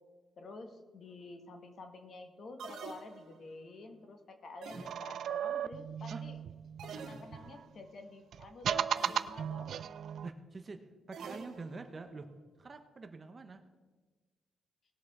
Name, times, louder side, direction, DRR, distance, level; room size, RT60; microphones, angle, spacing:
voice 1, 0.3-6.4 7.0-9.7, left 3 dB, 40° left, 6 dB, 1.4 m, -50 dB
sound 1, 2.6-3.6 4.6-5.4 6.8-7.7 9.0-9.5 11.1-12.0, right 5 dB, 90° right, 2.0 m, -47 dB
sound 2, 4.8-7.6 8.3-10.3, right 8 dB, 50° right, 0.4 m, -36 dB
voice 2, 10.2-12.3 12.6-13.6, right 3 dB, 25° right, 7 dB, 0.7 m, -46 dB
19.5 x 6.7 x 4.8 m, 1.3 s
cardioid pair, 180°, 0 cm